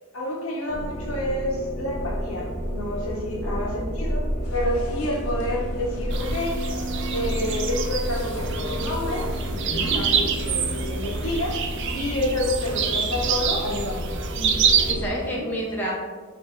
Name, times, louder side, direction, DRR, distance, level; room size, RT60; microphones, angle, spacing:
voice 1, 0.1-4.2 4.5-6.6 7.1-9.3 9.7-11.6 11.9-14.6, left 1 dB, 70° left, -2 dB, 1.0 m, -29 dB
sound 1, 0.7-15.1, equal, 25° right, 0.9 m, -30 dB
sound 2, 4.4-12.1, left 2 dB, 90° left, 0.6 m, -44 dB
sound 3, 6.1-14.9, right 7 dB, 55° right, 0.4 m, -27 dB
voice 2, 14.9-15.9, right 1 dB, 10° left, -6 dB, 0.7 m, -29 dB
5.9 x 3.4 x 2.5 m, 1.5 s
head